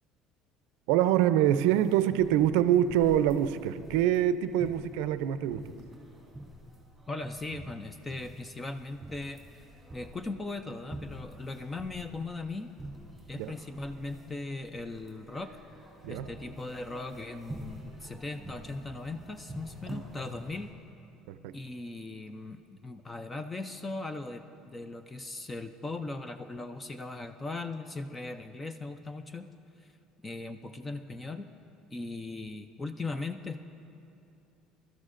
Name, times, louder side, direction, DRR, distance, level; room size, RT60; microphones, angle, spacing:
voice 1, 0.9-5.7 13.4-13.5 16.0-16.3 21.3-21.5, right 11 dB, 85° right, 0.4 m, -25 dB
sound 1, 1.6-20.7, right 1 dB, 5° right, 2.6 m, -47 dB
voice 2, 7.1-9.6 9.9-12.7 13.3-15.5 16.1-20.7 21.5-29.5 29.8-29.9 30.2-31.5 31.9-33.6, left 3 dB, 15° left, 0.3 m, -39 dB
23.0 x 13.0 x 2.5 m
cardioid pair, 165°, 0 cm